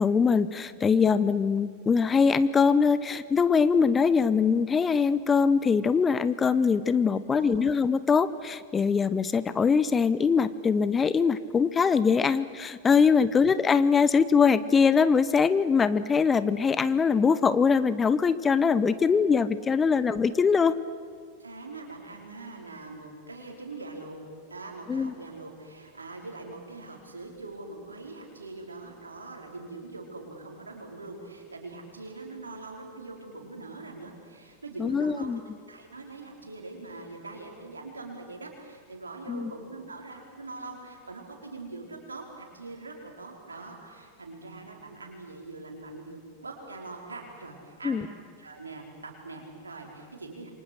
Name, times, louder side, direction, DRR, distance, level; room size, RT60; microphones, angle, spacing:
voice 1, 0.0-20.8 24.9-25.1 34.8-35.4 39.3-39.5 47.8-48.1, left 5 dB, 20° left, 15 dB, 0.9 m, -23 dB
voice 2, 7.1-7.7 13.3-13.5 21.4-24.2 24.5-35.3 35.7-48.1 48.4-50.5, right 3 dB, 75° right, 1 dB, 5.0 m, -43 dB
28.5 x 25.0 x 6.6 m, 2.1 s
figure-of-eight pair, 90°, 0 cm